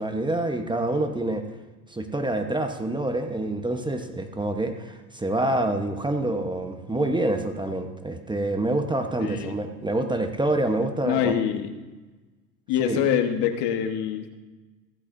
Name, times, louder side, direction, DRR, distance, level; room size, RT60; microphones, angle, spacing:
voice 1, 0.0-1.4 1.9-11.3 12.8-13.0, right 1 dB, 10° right, 5 dB, 1.1 m, -27 dB
voice 2, 9.2-9.5 11.0-11.7 12.7-14.3, left 9 dB, 55° left, 6 dB, 1.6 m, -25 dB
15.5 x 13.5 x 2.7 m, 1.2 s
hypercardioid pair, 85°, 49 cm